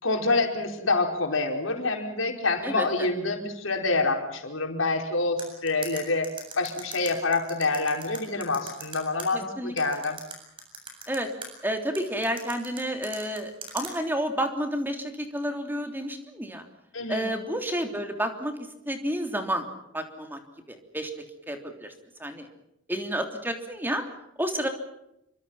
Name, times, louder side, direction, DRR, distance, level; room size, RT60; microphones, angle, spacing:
voice 1, 0.0-6.3 6.6-10.2 16.9-17.3, left 3 dB, 85° left, 3 dB, 4.9 m, -27 dB
voice 2, 2.6-3.1 9.3-9.7 11.1-11.3 11.6-16.6 17.1-18.5 18.9-19.6 19.9-20.4 20.9-21.1 21.5-21.9 22.2-22.5 22.9-24.0 24.4-24.7, equal, 10° right, 5 dB, 3.2 m, -30 dB
sound 1, 5.4-9.3 9.8-11.5 11.9-13.9, right 3 dB, 25° right, 7.6 m, -39 dB
28.0 x 24.5 x 5.7 m, 0.82 s
head